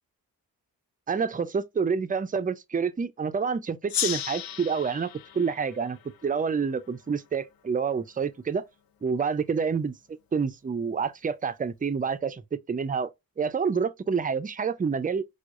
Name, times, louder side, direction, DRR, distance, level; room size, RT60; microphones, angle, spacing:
voice 1, 1.1-8.7 9.0-13.1 13.4-15.2, right 5 dB, 25° right, 0.5 m, -28 dB
Gong, 3.9-7.0, left 10 dB, 70° left, 0.6 m, -35 dB
4.6 x 2.1 x 2.5 m
cardioid pair, 50°, 37 cm